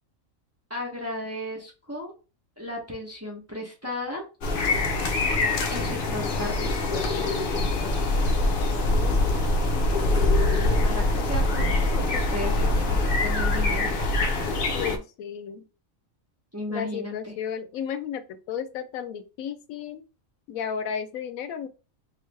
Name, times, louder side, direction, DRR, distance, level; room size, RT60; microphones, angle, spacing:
voice 1, 0.7-2.1 2.6-4.2 5.7-7.2 10.6-13.9 16.5-17.3, left 1 dB, 15° right, 0.8 m, -35 dB
sound 1, 4.4-15.0, left 2 dB, 55° left, 0.7 m, -24 dB
voice 2, 8.4-11.1 14.7-15.7 16.7-20.0 20.5-21.7, left 7 dB, 85° left, 1.0 m, -35 dB
3.1 x 2.5 x 3.2 m
omnidirectional pair, 1.4 m